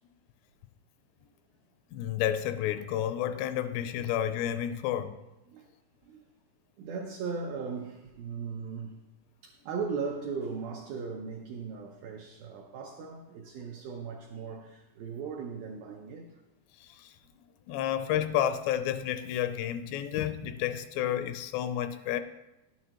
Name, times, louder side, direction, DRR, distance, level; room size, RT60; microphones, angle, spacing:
voice 1, 1.9-5.2 16.8-17.1 17.7-22.2, left 10 dB, 85° left, 10 dB, 2.7 m, -30 dB
voice 2, 6.8-9.0 9.4-16.4 22.0-22.1, right 5 dB, 85° right, 1 dB, 2.1 m, -38 dB
12.0 x 10.0 x 2.9 m, 0.99 s
omnidirectional pair, 5.1 m